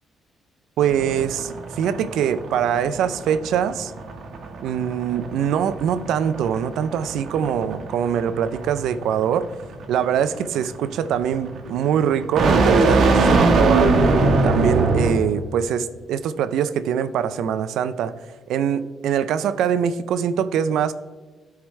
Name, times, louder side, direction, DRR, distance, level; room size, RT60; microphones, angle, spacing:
sound 1, 0.8-15.4, right 3 dB, 65° right, 1.1 m, -22 dB
voice 1, 0.8-1.5 1.8-3.9 4.6-9.5 9.9-13.9 14.4-18.1 18.5-20.9, right 8 dB, 80° right, 0.4 m, -23 dB
13.0 x 4.7 x 3.2 m
cardioid pair, 90°, 0 cm